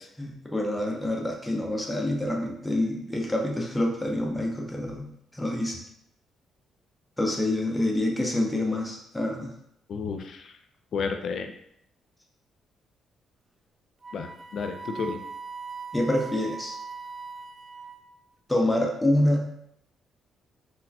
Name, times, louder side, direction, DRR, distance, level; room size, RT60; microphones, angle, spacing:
voice 1, 0.2-5.8 7.2-9.5 15.9-16.8 18.5-19.5, left 1 dB, 10° left, 0 dB, 0.7 m, -27 dB
voice 2, 9.9-10.4 10.9-11.5 14.1-15.2, left 5 dB, 60° left, 6 dB, 0.4 m, -31 dB
Wind instrument woodwind instrument, 14.0-18.2, right 4 dB, 25° right, 0.3 m, -40 dB
4.0 x 2.2 x 2.7 m, 0.73 s
cardioid pair, 90°, 0 cm